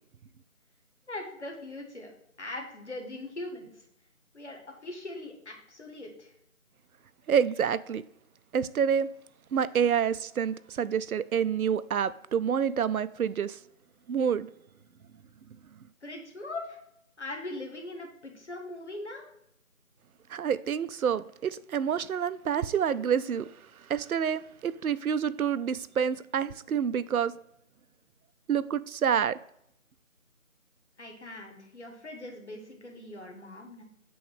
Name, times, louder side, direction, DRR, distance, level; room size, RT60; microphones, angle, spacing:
voice 1, 1.1-2.1 2.4-3.7 4.3-6.3 16.0-16.8 17.2-19.3 31.0-33.8, left 2 dB, 55° left, 1.5 m, -41 dB
voice 2, 7.3-8.0 8.5-9.1 9.5-13.6 14.1-14.5 20.3-23.5 23.9-27.3 28.5-29.4, right 8 dB, 90° right, 0.5 m, -28 dB
7.8 x 3.1 x 5.1 m
figure-of-eight pair, 170°, 41 cm